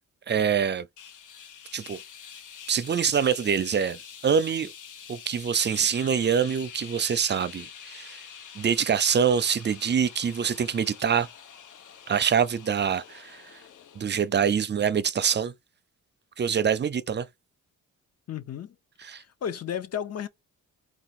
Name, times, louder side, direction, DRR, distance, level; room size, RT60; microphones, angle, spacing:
voice 1, 0.3-0.9 1.7-2.0 2.7-4.7 5.1-8.2 8.6-11.3 12.1-13.6 14.0-15.5 16.4-17.3 19.0-19.2, right 7 dB, 35° right, 0.5 m, -25 dB
sound 1, 1.0-14.3, left 8 dB, 65° left, 1.2 m, -46 dB
voice 2, 18.3-18.7 19.0-20.3, left 9 dB, 50° left, 0.8 m, -33 dB
4.8 x 2.4 x 4.1 m
wide cardioid pair, 140°, 33 cm